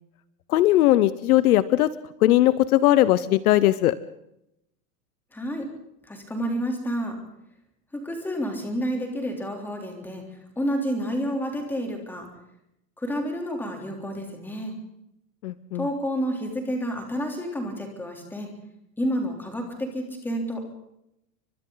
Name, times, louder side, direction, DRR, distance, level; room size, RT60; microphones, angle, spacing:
voice 1, 0.5-1.9 2.2-4.0 15.4-15.8, left 14 dB, 60° left, 16 dB, 1.0 m, -19 dB
voice 2, 5.3-5.7 6.0-7.2 7.9-10.2 10.5-12.3 13.0-14.8 15.7-18.5 19.0-20.6, equal, 5° left, 2 dB, 3.4 m, -29 dB
30.0 x 25.0 x 4.0 m, 0.82 s
supercardioid pair, 175°, 49 cm